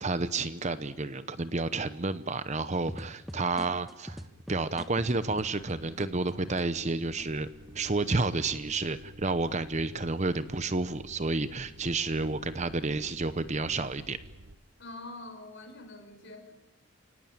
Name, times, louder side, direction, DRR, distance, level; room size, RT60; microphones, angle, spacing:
voice 1, 0.0-4.2 4.5-7.5 7.7-14.2, right 3 dB, 30° right, 13 dB, 0.8 m, -30 dB
sound 1, 2.9-7.3 7.7-8.4, equal, ahead, 1.1 m, -44 dB
sound 2, 5.1-14.6, right 1 dB, 55° right, 1.1 m, -50 dB
voice 2, 14.8-16.5, left 2 dB, 55° left, 6 dB, 4.6 m, -45 dB
29.5 x 18.5 x 8.9 m, 1.0 s
head